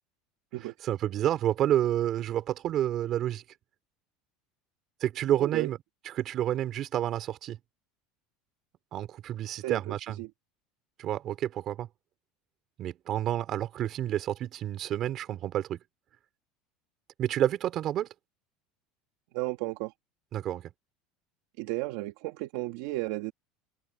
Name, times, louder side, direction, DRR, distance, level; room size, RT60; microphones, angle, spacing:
voice 1, 0.8-3.4 5.0-5.8 6.0-7.6 8.9-10.2 11.0-11.9 12.8-15.8 17.2-18.1 20.3-20.7, right 12 dB, 40° right, 3.4 m, -29 dB
voice 2, 5.4-5.7 9.6-10.3 19.3-19.9 21.6-23.3, right 19 dB, 70° right, 1.7 m, -34 dB
open air
supercardioid pair, 140°, 0 cm